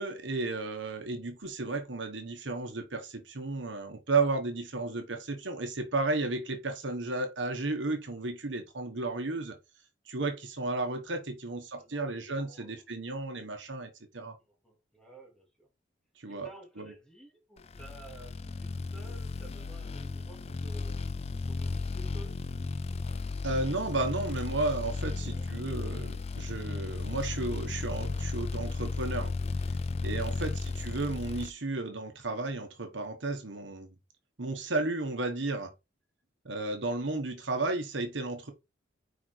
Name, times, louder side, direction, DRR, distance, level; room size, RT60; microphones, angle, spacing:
voice 1, 0.0-9.6 10.1-14.4 16.2-16.5 16.8-16.9 23.4-29.3 30.0-33.9 34.4-35.7 36.4-38.5, right 3 dB, 80° right, 1.3 m, -33 dB
voice 2, 11.8-12.8 14.3-15.7 16.3-21.0 21.5-22.4 24.9-25.5, right 1 dB, 5° left, 3.1 m, -53 dB
sound 1, 17.7-31.5, left 3 dB, 35° left, 0.4 m, -35 dB
5.2 x 4.7 x 4.6 m
head